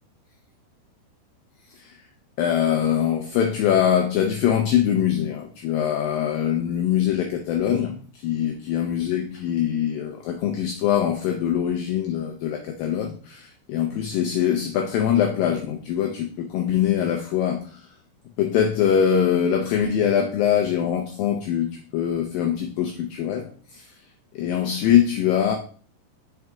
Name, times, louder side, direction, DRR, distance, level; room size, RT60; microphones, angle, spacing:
voice 1, 1.7-2.0 2.4-17.9 18.4-24.0 24.3-25.6, left 9 dB, 90° left, 4 dB, 2.0 m, -23 dB
5.4 x 4.8 x 3.6 m, 0.42 s
omnidirectional pair, 4.8 m